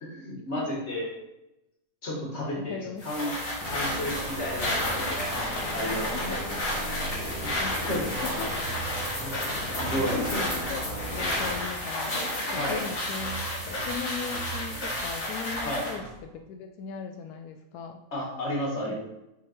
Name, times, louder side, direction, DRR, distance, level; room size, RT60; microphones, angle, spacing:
voice 1, 0.0-1.1 2.0-3.4 3.7-5.4 5.7-6.4 7.4-8.1 9.2-9.4 9.8-10.5 12.5-12.8 15.6-15.9 18.1-19.0, equal, 50° left, -3 dB, 1.9 m, -32 dB
voice 2, 2.5-3.4 6.1-6.4 7.6-7.9 8.4-8.6 10.0-12.3 12.5-18.0 18.9-19.0, left 6 dB, 90° left, 5 dB, 1.1 m, -39 dB
sound 1, 3.0-16.0, left 1 dB, 65° left, 2.2 m, -32 dB
sound 2, 3.6-11.6, equal, 15° left, 1.9 m, -36 dB
sound 3, 7.5-7.7 8.0-11.8 12.0-12.8 13.2-16.4, right 6 dB, 85° right, 1.3 m, -43 dB
6.2 x 3.8 x 4.2 m, 0.90 s
omnidirectional pair, 1.6 m